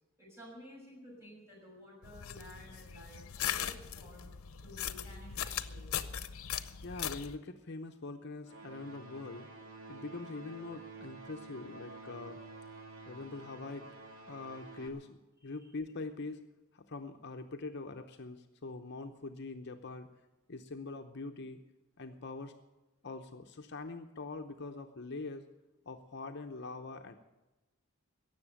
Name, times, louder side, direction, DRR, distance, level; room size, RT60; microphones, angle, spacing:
voice 1, 0.2-4.3 4.6-6.0 15.4-15.7, left 1 dB, 15° right, -4 dB, 6.1 m, -53 dB
sound 1, 2.0-7.4, left 9 dB, 90° left, 0.7 m, -39 dB
voice 2, 6.8-9.5 9.9-12.4 13.1-13.9 14.3-16.4 16.7-20.1 20.5-21.6 22.0-22.5 23.0-25.5 25.9-27.2, left 3 dB, 50° left, 5 dB, 0.8 m, -43 dB
sound 2, 8.4-14.9, right 3 dB, 75° right, 2.1 m, -50 dB
17.0 x 7.1 x 8.8 m, 1.1 s
head